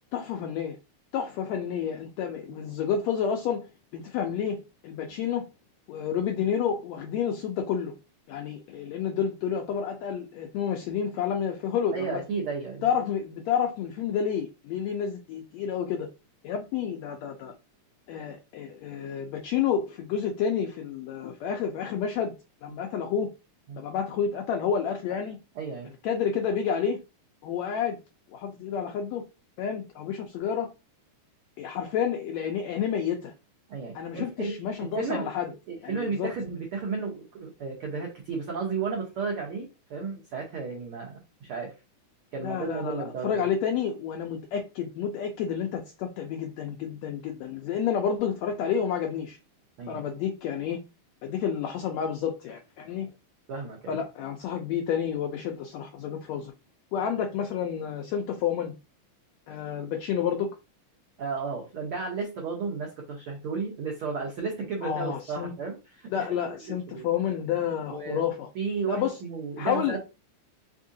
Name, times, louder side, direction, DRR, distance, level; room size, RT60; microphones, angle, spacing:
voice 1, 0.1-0.8 1.1-5.4 5.9-8.0 8.3-12.2 12.8-16.1 16.4-17.5 18.1-22.3 22.6-23.3 23.8-25.4 26.0-27.0 27.4-28.0 28.3-29.2 29.6-30.7 31.6-33.3 33.9-35.5 35.8-36.3 42.4-49.4 49.9-50.8 51.2-53.1 53.9-56.5 56.9-58.7 59.5-60.5 64.8-65.5 66.1-68.5 68.9-69.2 69.6-70.0, left 8 dB, 85° left, 1.5 m, -30 dB
voice 2, 11.9-12.9 23.7-23.8 25.5-25.9 33.7-41.7 42.3-43.5 49.8-50.0 53.0-53.1 53.5-54.0 61.2-66.5 66.9-67.1 67.9-68.2 68.5-70.0, right 5 dB, 80° right, 1.2 m, -33 dB
4.7 x 3.6 x 2.6 m
omnidirectional pair, 3.7 m